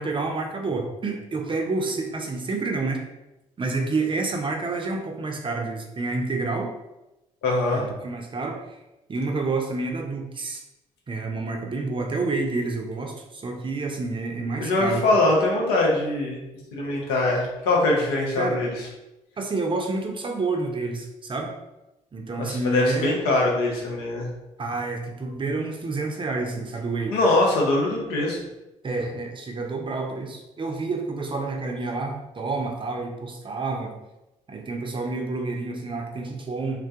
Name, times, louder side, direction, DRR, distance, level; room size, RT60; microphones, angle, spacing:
voice 1, 0.0-3.0 3.6-6.7 7.7-8.8 9.1-10.6 11.1-15.0 18.3-18.6 19.4-21.5 22.1-23.2 24.6-27.2 28.8-34.0 34.5-36.8, right 3 dB, 30° right, 2 dB, 0.5 m, -29 dB
voice 2, 7.4-7.9 14.6-16.4 16.7-18.9 22.4-24.3 27.1-28.4, left 2 dB, 80° left, -2 dB, 0.7 m, -22 dB
2.2 x 2.1 x 2.7 m, 0.95 s
hypercardioid pair, 50°, 16 cm